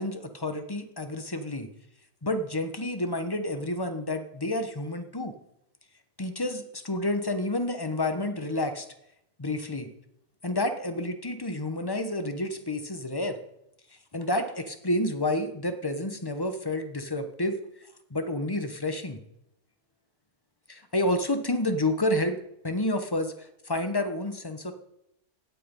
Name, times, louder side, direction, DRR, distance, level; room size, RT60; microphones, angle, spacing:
voice 1, 0.0-1.7 2.2-5.3 6.2-8.9 9.4-9.9 10.4-13.4 14.1-17.6 18.1-19.2 20.7-22.4 22.6-24.7, left 1 dB, 15° left, 8 dB, 0.9 m, -29 dB
17.0 x 8.5 x 5.4 m, 0.81 s
omnidirectional pair, 1.7 m